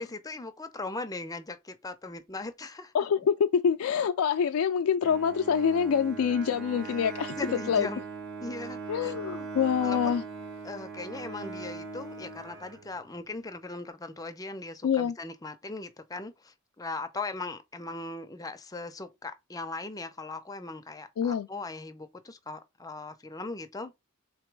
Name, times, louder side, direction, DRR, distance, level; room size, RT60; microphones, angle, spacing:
voice 1, 0.0-2.9 7.4-8.0 8.4-9.5 9.8-10.2 10.6-23.9, left 3 dB, 15° left, 0.5 m, -39 dB
voice 2, 2.9-7.9 8.9-10.2 14.8-15.1 21.2-21.5, left 7 dB, 75° left, 0.3 m, -26 dB
Bowed string instrument, 5.0-13.2, right 4 dB, 60° right, 1.3 m, -40 dB
3.9 x 3.0 x 4.6 m
head